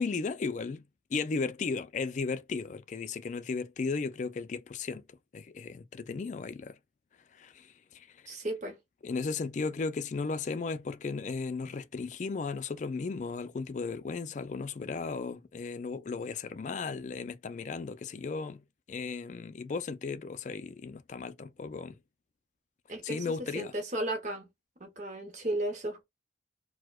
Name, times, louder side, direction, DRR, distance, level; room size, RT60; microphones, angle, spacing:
voice 1, 0.0-5.0 5.3-6.8 7.3-8.2 9.0-22.0 23.0-23.7, left 4 dB, 40° left, 0.3 m, -35 dB
voice 2, 8.3-8.8 22.9-23.2 23.5-24.5 24.8-26.0, right 1 dB, 40° right, 0.8 m, -34 dB
4.6 x 2.1 x 2.2 m
head